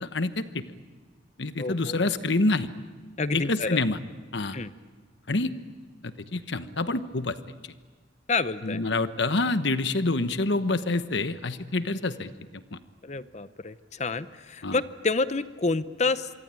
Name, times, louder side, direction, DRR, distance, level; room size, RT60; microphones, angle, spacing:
voice 1, 0.0-0.6 1.4-2.7 3.3-4.0 4.3-4.6 5.3-5.5 6.0-7.3 8.6-12.3 12.7-12.8 14.6-14.8, left 2 dB, 65° left, 11 dB, 1.1 m, -27 dB
voice 2, 1.6-2.1 3.2-3.8 4.5-4.7 8.3-8.8 13.0-16.3, left 3 dB, 35° left, 14 dB, 0.7 m, -29 dB
26.5 x 23.5 x 9.0 m, 1.4 s
head